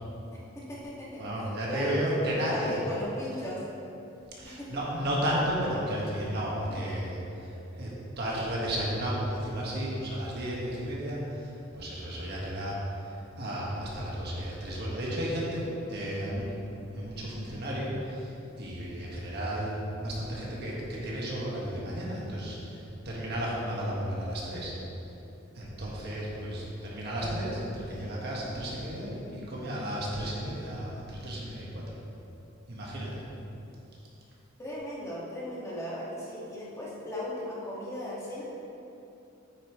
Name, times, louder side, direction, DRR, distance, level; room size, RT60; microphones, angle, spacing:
voice 1, 0.5-1.2 1.7-3.6 4.4-4.7 6.7-7.1 34.6-38.4, left 1 dB, 15° left, -7 dB, 1.8 m, -36 dB
voice 2, 1.2-2.8 4.4-12.8 13.3-18.3 18.6-22.8 23.0-24.7 25.5-31.8 32.7-33.2, equal, 55° right, -5 dB, 1.6 m, -33 dB
9.0 x 8.6 x 3.1 m, 2.8 s
head